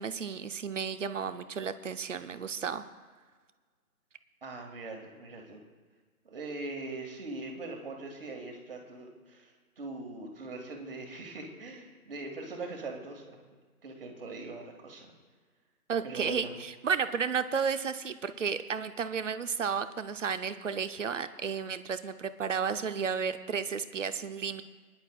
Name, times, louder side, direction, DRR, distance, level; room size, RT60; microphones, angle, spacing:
voice 1, 0.0-2.8 15.9-24.6, right 6 dB, 55° right, 11 dB, 0.7 m, -32 dB
voice 2, 4.4-5.6 6.2-13.4 13.8-15.1 16.0-16.5, right 3 dB, 40° right, 2 dB, 1.8 m, -41 dB
24.5 x 10.5 x 2.3 m, 1.5 s
figure-of-eight pair, 150°, 45 cm